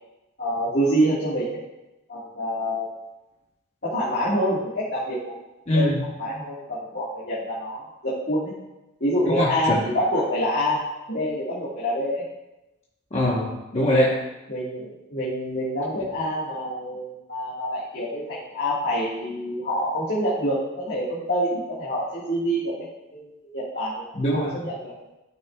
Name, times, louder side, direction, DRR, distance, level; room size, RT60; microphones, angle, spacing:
voice 1, 0.4-1.6 2.1-2.9 3.8-5.3 5.7-5.9 6.2-8.5 9.0-12.2 14.5-22.8 23.1-23.3 23.5-24.0 24.3-24.9, equal, 50° left, -8 dB, 1.7 m, -26 dB
voice 2, 5.7-6.0 9.3-9.8 13.1-14.1 24.1-24.5, equal, 30° left, -5 dB, 1.1 m, -22 dB
12.5 x 6.3 x 2.3 m, 0.99 s
head